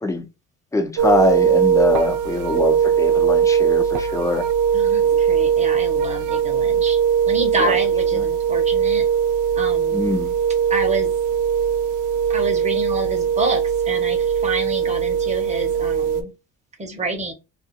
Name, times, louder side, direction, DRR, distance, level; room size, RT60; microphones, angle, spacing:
voice 1, 0.7-4.4 7.6-7.7 9.9-10.3, left 2 dB, 10° left, 0.5 m, -22 dB
sound 1, 1.0-16.2, right 8 dB, 85° right, 0.5 m, -20 dB
voice 2, 4.7-7.0 7.3-9.1 9.6-10.1 10.7-11.1 12.3-16.3 16.8-17.3, right 2 dB, 20° right, 0.8 m, -28 dB
2.5 x 2.4 x 2.6 m
cardioid pair, 110°, 30 cm